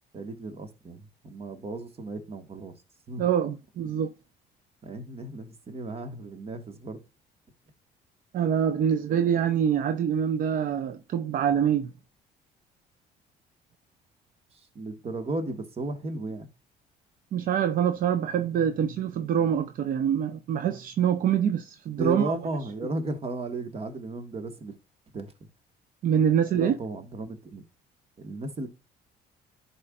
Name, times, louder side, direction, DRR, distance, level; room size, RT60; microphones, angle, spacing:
voice 1, 0.1-2.7 3.1-3.2 4.8-7.0 14.5-16.5 22.0-24.8 25.1-25.3 26.5-27.6 28.2-28.7, right 2 dB, 35° right, 1.5 m, -35 dB
voice 2, 3.2-4.1 8.3-11.9 17.3-22.3 26.0-26.8, right 8 dB, 55° right, 0.7 m, -25 dB
11.0 x 4.5 x 2.4 m
cardioid pair, 110°, 17 cm